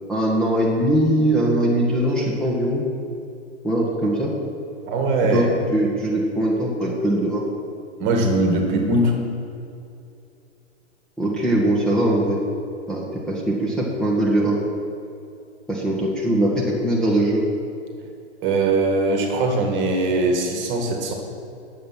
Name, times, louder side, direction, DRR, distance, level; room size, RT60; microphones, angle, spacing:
voice 1, 0.1-2.8 3.6-4.3 5.3-7.4 11.2-12.4 12.9-14.6 15.7-17.4, right 1 dB, ahead, -6 dB, 1.4 m, -21 dB
voice 2, 4.9-5.5 8.0-9.2 18.4-21.1, right 2 dB, 30° right, 2 dB, 1.9 m, -21 dB
10.0 x 7.3 x 6.0 m, 2.7 s
hypercardioid pair, 120°, 35 cm